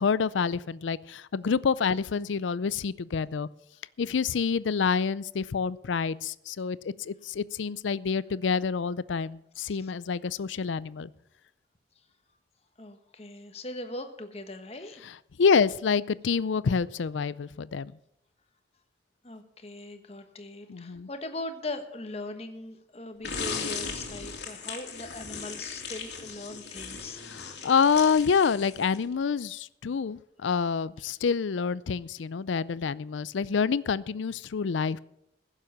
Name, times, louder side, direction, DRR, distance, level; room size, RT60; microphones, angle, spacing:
voice 1, 0.0-3.5 4.0-11.1 15.4-17.9 20.7-21.1 27.3-35.0, left 5 dB, 90° left, 19 dB, 0.5 m, -27 dB
voice 2, 12.8-15.0 19.2-27.2 31.0-31.1, left 2 dB, 35° left, 7 dB, 1.3 m, -40 dB
sound 1, 23.2-29.1, left 5 dB, 70° left, 2.5 m, -38 dB
15.5 x 7.4 x 7.2 m, 0.78 s
head